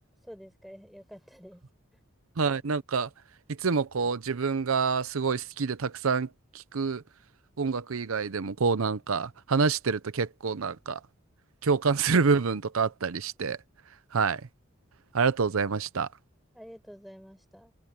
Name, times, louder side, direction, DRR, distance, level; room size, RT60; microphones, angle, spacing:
voice 1, 0.2-1.6 16.5-17.7, equal, ahead, 7.2 m, -48 dB
voice 2, 2.4-3.1 3.6-7.0 7.6-11.0 11.6-13.6 14.1-14.5 15.1-16.1, right 5 dB, 75° right, 0.7 m, -27 dB
head